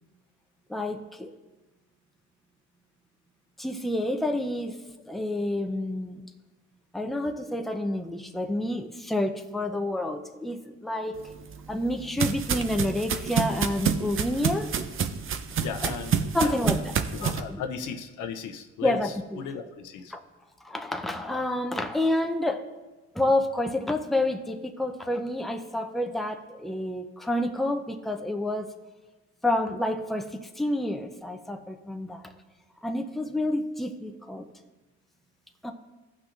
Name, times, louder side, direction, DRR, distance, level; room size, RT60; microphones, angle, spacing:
voice 1, 0.7-1.3 3.6-4.7 5.1-6.2 6.9-11.2 11.7-14.7 15.8-15.9 16.3-16.9 17.2-17.3 18.8-19.4 20.1-20.2 20.6-22.6 23.1-28.7 29.4-32.3 32.8-34.5 35.6-35.7, left 1 dB, ahead, 5 dB, 0.6 m, -29 dB
sound 1, 11.3-17.4, right 7 dB, 45° right, 0.6 m, -28 dB
voice 2, 15.6-16.8 17.1-20.1, left 7 dB, 80° left, 5 dB, 0.8 m, -37 dB
16.0 x 5.9 x 2.6 m, 1.2 s
cardioid pair, 90°, 30 cm